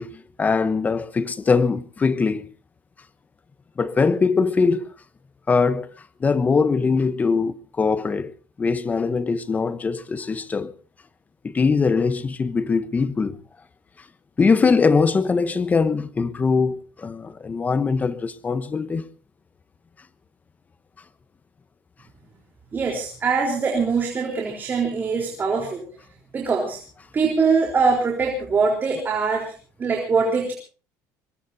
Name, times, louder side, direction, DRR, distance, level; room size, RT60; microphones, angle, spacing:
voice 1, 0.0-2.5 3.8-4.9 5.5-5.9 6.2-8.3 8.6-10.7 11.4-13.4 14.4-19.1, left 4 dB, 20° left, 1.0 m, -21 dB
voice 2, 22.7-25.9 26.3-26.8 27.1-29.5 29.8-30.5, right 4 dB, 25° right, 3.9 m, -22 dB
24.0 x 21.5 x 2.8 m
cardioid pair, 130°, 8 cm